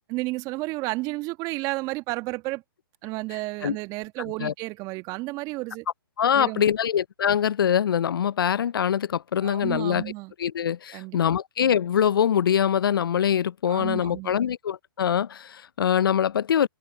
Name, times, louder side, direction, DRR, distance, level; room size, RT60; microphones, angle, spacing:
voice 1, 0.1-2.6 3.0-5.8 6.3-6.6 9.4-10.3 10.9-11.2 13.7-14.3, right 22 dB, 30° right, 1.5 m, -32 dB
voice 2, 6.2-10.0 10.4-16.7, left 9 dB, 65° left, 0.5 m, -23 dB
hypercardioid pair, 130°, 13 cm